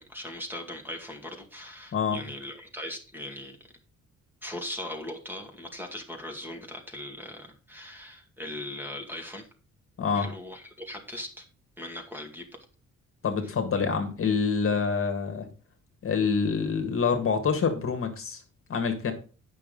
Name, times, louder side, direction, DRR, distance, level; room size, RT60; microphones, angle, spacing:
voice 1, 0.0-3.6 4.4-9.5 10.1-11.4 11.8-12.6 13.4-13.5, left 1 dB, 5° right, 3 dB, 2.2 m, -39 dB
voice 2, 13.2-15.5 16.0-18.4 18.7-19.1, left 5 dB, 45° left, 4 dB, 1.9 m, -26 dB
8.5 x 6.1 x 5.3 m, 0.37 s
cardioid pair, 90°, 30 cm